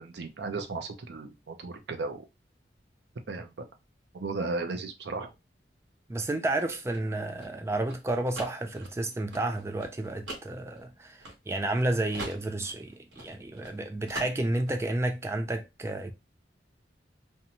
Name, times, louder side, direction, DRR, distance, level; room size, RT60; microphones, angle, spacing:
voice 1, 0.0-2.3 3.3-3.7 4.1-5.3, right 3 dB, 75° right, 0.5 m, -35 dB
voice 2, 6.1-16.1, right 2 dB, 15° right, 0.3 m, -31 dB
sound 1, 6.5-11.8 12.1-13.8 14.1-14.8, right 1 dB, 90° right, 1.0 m, -43 dB
2.6 x 2.1 x 2.8 m
head